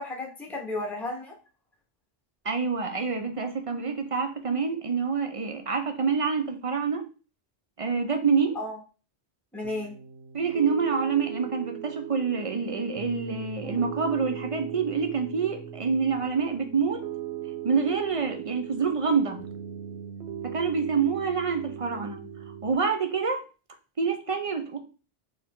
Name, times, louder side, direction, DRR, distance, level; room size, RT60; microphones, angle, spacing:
voice 1, 0.0-1.4 8.5-8.8 9.5-9.9, left 2 dB, ahead, 0.9 m, -33 dB
voice 2, 2.4-7.1 7.8-8.6 10.3-17.0 17.6-19.4 20.4-22.2 22.6-23.4 24.0-24.8, right 5 dB, 45° right, 0.5 m, -27 dB
Piano, 9.6-22.7, right 10 dB, 90° right, 0.9 m, -39 dB
4.4 x 2.9 x 3.6 m
omnidirectional pair, 1.1 m